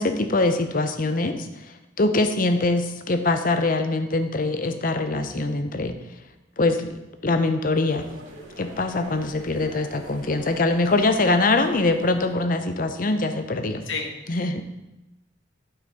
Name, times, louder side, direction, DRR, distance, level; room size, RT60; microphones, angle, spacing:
voice 1, 0.0-1.5 2.0-6.0 6.6-7.0 7.2-8.1 8.6-13.8 14.3-14.6, left 2 dB, 45° left, 8 dB, 0.7 m, -23 dB
sound 1, 7.9-12.6, right 1 dB, 85° right, 2.0 m, -44 dB
voice 2, 13.8-14.6, left 4 dB, 90° left, 2 dB, 1.5 m, -33 dB
12.5 x 5.9 x 4.1 m, 0.96 s
head